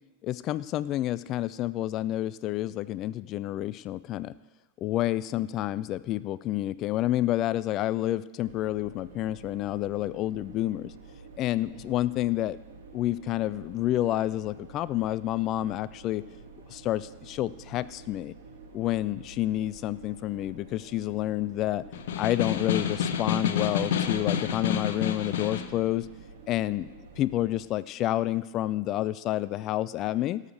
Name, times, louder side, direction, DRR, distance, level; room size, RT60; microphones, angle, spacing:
voice 1, 0.2-4.3 4.8-10.9 11.4-12.6 12.9-16.2 16.7-18.3 18.7-21.8 22.2-26.1 26.5-26.9 27.2-30.4, left 14 dB, 35° left, 18 dB, 0.3 m, -29 dB
sound 1, 8.4-27.6, right 4 dB, 65° right, 2.1 m, -49 dB
Snare drum, 21.9-25.8, left 8 dB, 55° left, 0.9 m, -29 dB
17.5 x 6.6 x 6.4 m, 1.2 s
figure-of-eight pair, 90°, 0 cm